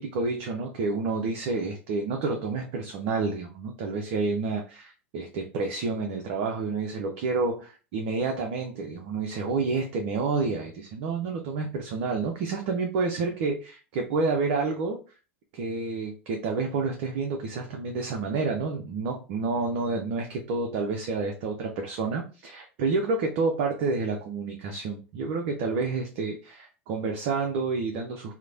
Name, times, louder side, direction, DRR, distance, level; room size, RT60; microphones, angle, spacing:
voice 1, 0.0-15.0 15.5-28.4, right 4 dB, 55° right, 2 dB, 0.4 m, -29 dB
3.0 x 2.0 x 2.4 m, 0.34 s
figure-of-eight pair, 80°, 7 cm